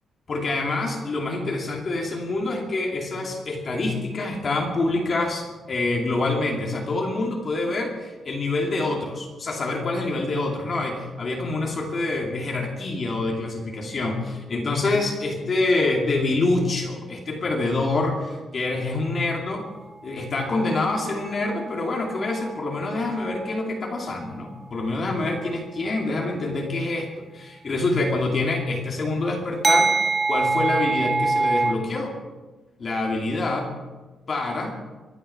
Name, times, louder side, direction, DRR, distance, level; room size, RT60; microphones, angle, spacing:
voice 1, 0.3-19.7 20.0-27.1 27.3-29.9 30.3-32.1 32.8-33.7 34.3-34.7, left 2 dB, 40° left, 0 dB, 2.6 m, -26 dB
sound 1, 20.4-20.9 21.2-23.6 29.6-31.7, right 3 dB, 20° right, 1.3 m, -24 dB
24.0 x 9.9 x 6.0 m, 1.3 s
cardioid pair, 140°, 0 cm